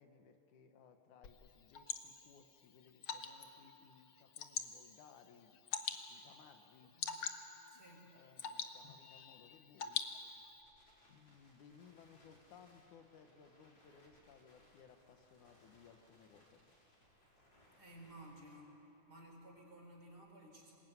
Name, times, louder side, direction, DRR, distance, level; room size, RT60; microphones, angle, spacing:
voice 1, 0.0-5.6 6.1-7.0 8.1-10.1 11.1-16.6, left 6 dB, 80° left, 6 dB, 2.6 m, -62 dB
Water / Drip, 1.2-10.6, left 7 dB, 55° left, 1.6 m, -46 dB
voice 2, 6.9-7.3 7.7-8.1 17.8-18.7 19.1-20.8, right 1 dB, 30° right, 0 dB, 4.7 m, -56 dB
Crackle, 9.4-18.6, left 1 dB, 35° left, 5.1 m, -69 dB
25.5 x 20.5 x 9.4 m, 3.0 s
omnidirectional pair, 3.5 m